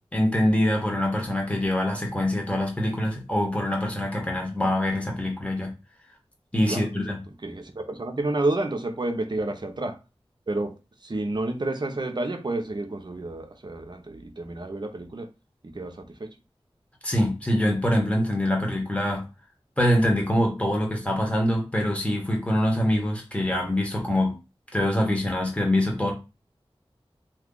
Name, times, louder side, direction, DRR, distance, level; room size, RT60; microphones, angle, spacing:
voice 1, 0.1-5.7 6.5-7.2 17.0-19.3 19.8-24.4 24.7-26.1, left 1 dB, 10° left, 1.2 m, -24 dB
voice 2, 7.4-10.0 10.5-15.3 15.6-16.3, right 2 dB, 45° right, 0.6 m, -30 dB
2.7 x 2.3 x 3.7 m
wide cardioid pair, 60°, 10 cm